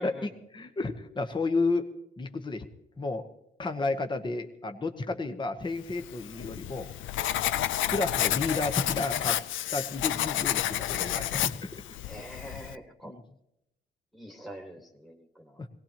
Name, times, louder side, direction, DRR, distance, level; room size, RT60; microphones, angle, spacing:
voice 1, 0.0-1.9 2.2-2.7 3.0-3.2 3.6-6.9 7.9-9.4 9.7-11.8 13.0-13.2 15.6-15.7, left 3 dB, 25° left, 7 dB, 1.0 m, -32 dB
Writing, 6.0-12.8, left 13 dB, 75° left, 0.5 m, -30 dB
voice 2, 12.0-13.1 14.1-15.6, equal, ahead, 2 dB, 1.7 m, -44 dB
20.5 x 18.0 x 3.0 m, 0.85 s
cardioid pair, 90°, 20 cm